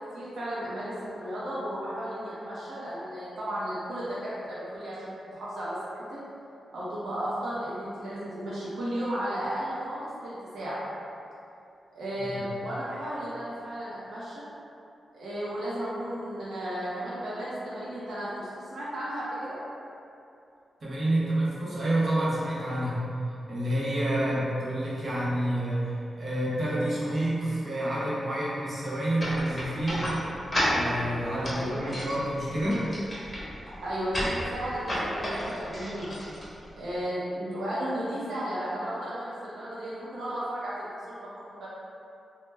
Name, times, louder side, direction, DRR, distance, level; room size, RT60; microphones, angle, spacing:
voice 1, 0.1-6.2 6.7-10.8 11.9-14.5 15.1-19.6 31.5-32.0 33.8-36.1 36.7-41.7, equal, 85° right, -9 dB, 0.5 m, -34 dB
voice 2, 12.2-12.5 20.8-23.0 23.5-30.1 30.7-32.8, right 1 dB, 50° right, -8 dB, 0.7 m, -28 dB
sound 1, 29.2-37.0, equal, 25° left, 0.7 m, -33 dB
2.1 x 2.1 x 3.2 m, 2.6 s
wide cardioid pair, 100°, 0 cm